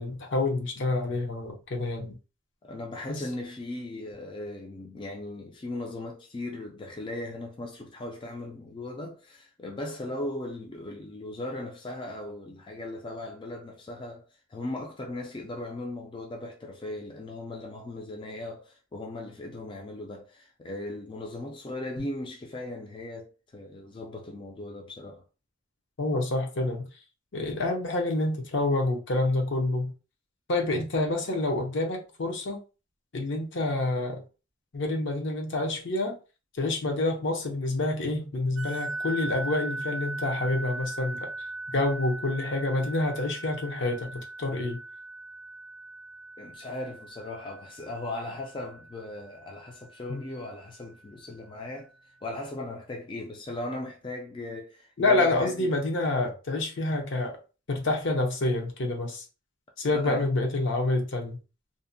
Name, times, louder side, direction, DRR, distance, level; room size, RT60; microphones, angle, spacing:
voice 1, 0.0-2.1 3.1-3.2 26.0-26.8 27.3-29.9 30.5-32.6 33.1-34.2 34.7-36.2 36.6-41.3 41.7-44.8 50.1-50.2 55.0-57.4 57.7-59.2 59.8-61.4, left 2 dB, 65° left, 0.6 m, -28 dB
voice 2, 2.6-14.2 14.5-25.2 46.4-51.9 52.2-55.8 59.9-60.3, left 2 dB, 25° left, 0.3 m, -38 dB
sound 1, 38.6-50.8, right 2 dB, 75° right, 0.4 m, -39 dB
2.6 x 2.1 x 2.6 m
head